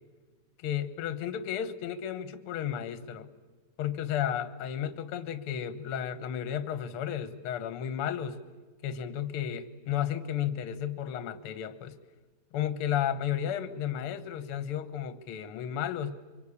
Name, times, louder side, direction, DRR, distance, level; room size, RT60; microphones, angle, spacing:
voice 1, 0.6-3.3 3.8-8.4 8.8-11.9 12.5-16.2, left 9 dB, 60° left, 11 dB, 1.5 m, -33 dB
25.0 x 23.5 x 8.6 m, 1.3 s
omnidirectional pair, 4.1 m